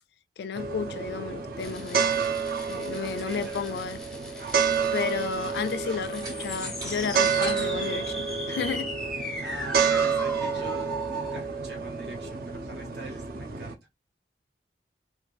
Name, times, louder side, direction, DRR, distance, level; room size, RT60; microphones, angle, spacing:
voice 1, 0.4-2.1 2.7-4.0 4.4-4.6 4.9-8.9 9.2-9.4 10.5-10.7, left 6 dB, 65° left, 0.3 m, -33 dB
sound 1, 0.5-13.7, right 6 dB, 50° right, 0.5 m, -29 dB
sound 2, 1.6-11.4, equal, 5° left, 0.5 m, -38 dB
voice 2, 3.2-3.8 9.4-13.8, right 2 dB, 75° right, 1.4 m, -43 dB
sound 3, 3.3-8.4, right 1 dB, 20° right, 1.0 m, -44 dB
3.1 x 2.3 x 2.4 m
head